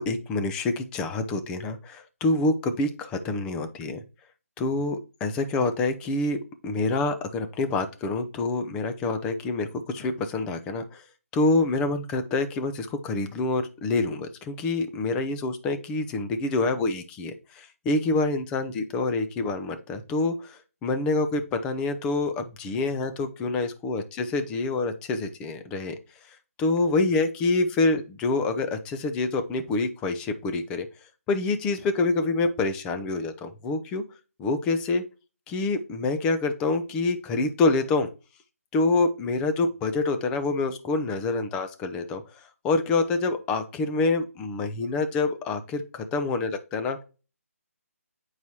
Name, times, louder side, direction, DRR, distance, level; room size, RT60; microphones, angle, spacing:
voice 1, 0.0-4.0 4.6-6.4 6.6-11.0 11.3-26.0 26.6-30.9 31.3-34.0 34.4-35.0 35.5-38.1 38.7-42.2 42.6-47.0, left 3 dB, 10° left, 8 dB, 0.5 m, -26 dB
9.2 x 4.7 x 2.8 m, 0.32 s
figure-of-eight pair, 160°, 8 cm